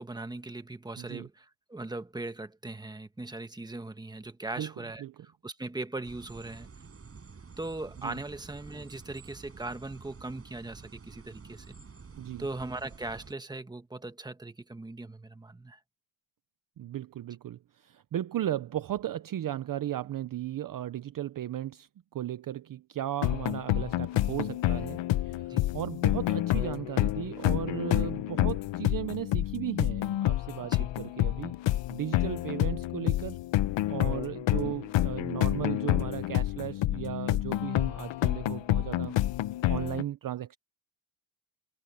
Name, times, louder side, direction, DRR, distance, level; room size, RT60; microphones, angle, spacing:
voice 1, 0.0-6.7 7.6-11.8 12.4-15.8 25.5-25.7 30.6-30.9 34.6-34.7, right 2 dB, 10° right, 1.3 m, -39 dB
voice 2, 1.0-1.3 4.6-4.7 5.0-5.1 8.0-8.2 12.2-12.5 16.8-31.6 31.9-33.4 33.9-39.2 39.7-40.6, right 12 dB, 45° right, 0.6 m, -36 dB
sound 1, 6.0-13.3, right 5 dB, 25° right, 6.8 m, -49 dB
sound 2, 23.2-40.0, left 15 dB, 60° left, 0.8 m, -29 dB
cardioid pair, 150°, 50 cm